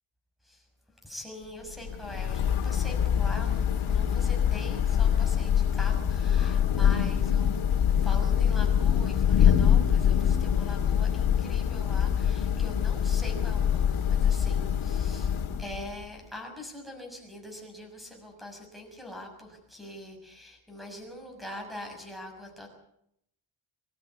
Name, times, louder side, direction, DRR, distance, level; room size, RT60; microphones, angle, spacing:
voice 1, 1.0-7.6 8.0-15.3 15.6-22.7, left 1 dB, ahead, 3 dB, 6.3 m, -43 dB
Thunder / Rain, 1.7-16.1, left 8 dB, 80° left, 2.1 m, -24 dB
25.0 x 13.0 x 9.6 m, 0.76 s
wide cardioid pair, 155°, 49 cm